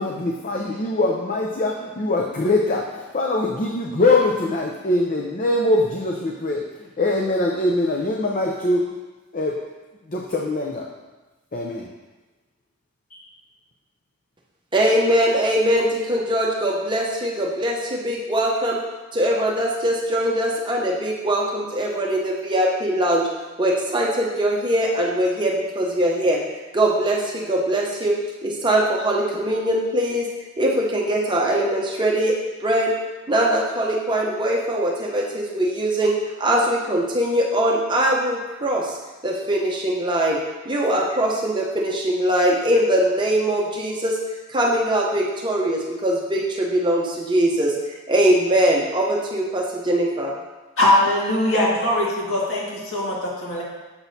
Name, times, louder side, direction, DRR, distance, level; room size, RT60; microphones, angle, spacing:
voice 1, 0.0-8.9 9.3-9.5 10.1-10.9 11.5-11.9 13.1-13.2, left 2 dB, 40° left, -1 dB, 0.5 m, -22 dB
voice 2, 14.7-18.8 19.1-23.3 23.6-26.4 26.7-28.2 28.4-30.3 30.6-32.9 33.3-39.0 39.2-40.4 40.7-44.2 44.5-47.7 48.1-50.3, right 1 dB, 20° right, -2 dB, 0.7 m, -21 dB
voice 3, 50.8-53.6, left 1 dB, 65° left, -5 dB, 1.8 m, -21 dB
7.1 x 6.1 x 2.7 m, 1.1 s
head